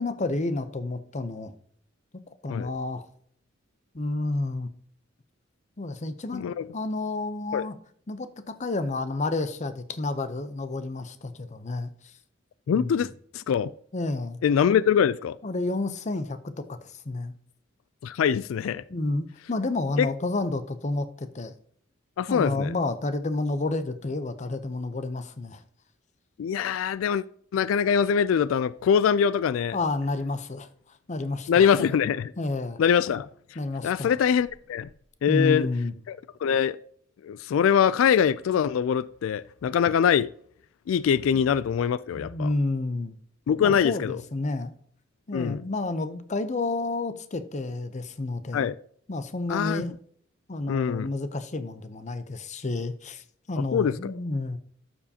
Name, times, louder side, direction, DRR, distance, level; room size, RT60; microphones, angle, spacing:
voice 1, 0.0-1.5 2.4-3.0 3.9-4.7 5.8-6.5 6.7-7.8 8.1-11.9 12.7-13.0 13.9-14.4 15.4-17.3 18.9-21.5 22.3-25.6 29.7-30.7 31.1-31.7 32.4-32.8 33.6-34.1 35.3-35.9 42.2-43.2 43.6-44.7 45.3-48.7 49.1-49.9 50.5-54.6, left 2 dB, 35° left, 0.7 m, -30 dB
voice 2, 6.3-6.7 7.5-7.7 12.7-13.1 13.3-13.7 14.4-15.4 18.0-18.8 20.0-20.1 22.2-22.7 26.4-27.2 27.5-29.8 31.5-32.3 32.8-33.3 33.8-34.9 35.2-35.7 36.1-36.8 37.2-40.3 40.9-42.5 43.5-44.2 45.3-45.6 48.5-48.7 49.5-49.8 50.7-51.1 53.7-54.1, left 7 dB, 90° left, 0.3 m, -23 dB
sound 1, 31.6-32.0 33.0-33.1 33.7-33.8 34.4-35.1, right 3 dB, 55° right, 1.5 m, -51 dB
12.5 x 7.1 x 2.8 m
head